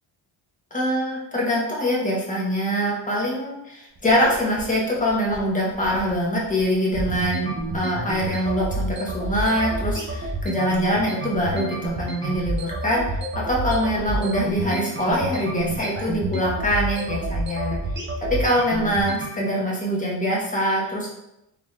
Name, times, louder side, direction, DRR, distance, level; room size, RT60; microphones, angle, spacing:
voice 1, 0.7-17.8 18.2-21.1, equal, 15° left, -4 dB, 1.0 m, -24 dB
sound 1, 4.0-19.3, right 2 dB, 25° right, 0.5 m, -29 dB
3.5 x 3.0 x 3.0 m, 0.86 s
cardioid pair, 125°, 49 cm